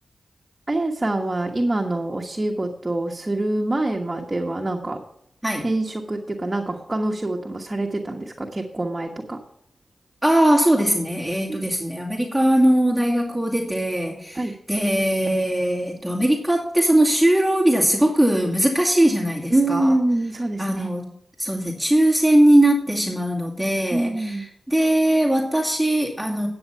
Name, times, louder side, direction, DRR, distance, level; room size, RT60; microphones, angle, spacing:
voice 1, 0.7-5.0 5.6-9.4 11.5-11.6 14.3-14.5 19.5-20.9 23.9-24.5, right 2 dB, 30° right, 1 dB, 1.3 m, -25 dB
voice 2, 10.2-20.0 20.6-21.1 21.4-26.5, right 1 dB, ahead, -2 dB, 2.2 m, -20 dB
9.8 x 8.0 x 5.6 m, 0.73 s
cardioid pair, 50°, 0 cm